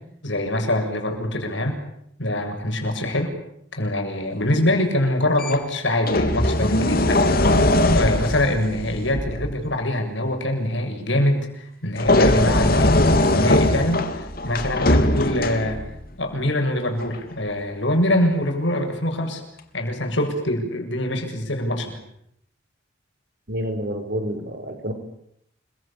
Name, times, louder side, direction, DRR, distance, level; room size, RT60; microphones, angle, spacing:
voice 1, 0.2-1.8 2.2-3.3 3.7-7.2 7.9-15.8 16.2-19.4 19.7-22.0, left 1 dB, 70° left, 4 dB, 7.3 m, -24 dB
sound 1, 5.4-5.6 6.1-9.5 12.0-16.0 17.0-17.2, left 1 dB, 50° left, 2.8 m, -20 dB
voice 2, 23.5-24.9, equal, 55° right, 7 dB, 5.4 m, -28 dB
29.0 x 22.5 x 8.7 m, 0.75 s
head